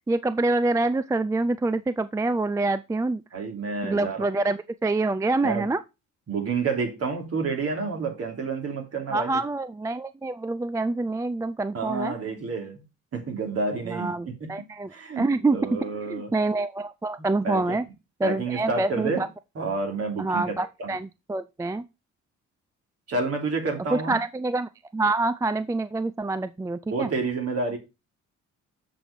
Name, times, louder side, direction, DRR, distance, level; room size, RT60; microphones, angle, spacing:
voice 1, 0.1-3.2 3.8-5.8 9.1-12.1 13.9-15.8 16.1-17.9 18.2-19.3 20.2-21.9 23.9-27.1, right 2 dB, 10° right, 0.3 m, -26 dB
voice 2, 3.3-4.2 5.4-5.7 6.3-9.4 11.7-12.8 13.1-16.3 17.4-17.8 18.2-19.2 19.5-20.9 23.1-24.2 26.9-27.8, right 4 dB, 50° right, 3.2 m, -29 dB
7.4 x 5.1 x 5.1 m
cardioid pair, 90°, 30 cm